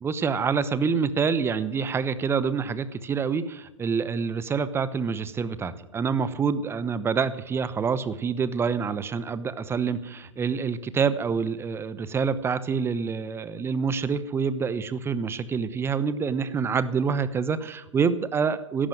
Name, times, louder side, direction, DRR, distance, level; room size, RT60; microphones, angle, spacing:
voice 1, 0.0-18.9, right 5 dB, 15° right, 15 dB, 0.9 m, -27 dB
13.0 x 11.5 x 9.0 m, 0.89 s
hypercardioid pair, 115°, 16 cm